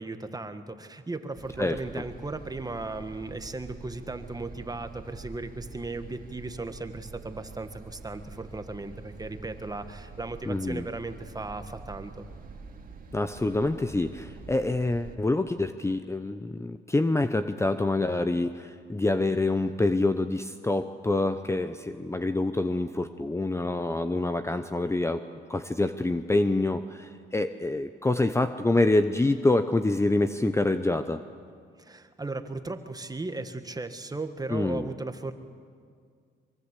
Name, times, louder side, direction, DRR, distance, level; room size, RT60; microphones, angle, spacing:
voice 1, 0.0-12.3 31.8-35.3, right 2 dB, 20° right, 9 dB, 1.6 m, -36 dB
sound 1, 1.4-15.2, right 4 dB, 45° right, 2.3 m, -46 dB
voice 2, 1.6-2.0 10.5-10.8 13.1-25.2 25.5-31.2 34.5-34.9, left 2 dB, 15° left, 10 dB, 0.8 m, -26 dB
24.0 x 22.5 x 8.3 m, 2.1 s
cardioid pair, 90°, 20 cm